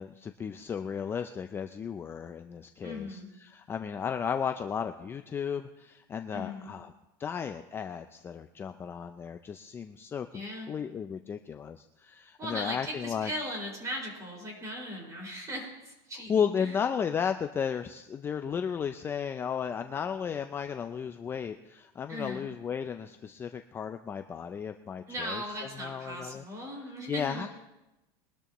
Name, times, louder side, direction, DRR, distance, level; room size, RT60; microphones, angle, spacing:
voice 1, 0.0-6.9 7.2-10.4 10.7-13.3 16.3-26.4 27.1-27.5, left 7 dB, 15° left, 7 dB, 0.4 m, -34 dB
voice 2, 2.8-3.3 6.3-6.7 10.3-10.7 12.4-16.8 22.1-22.5 25.1-27.5, equal, 25° right, -1 dB, 5.2 m, -38 dB
22.5 x 12.5 x 3.0 m, 0.98 s
supercardioid pair, 155°, 14 cm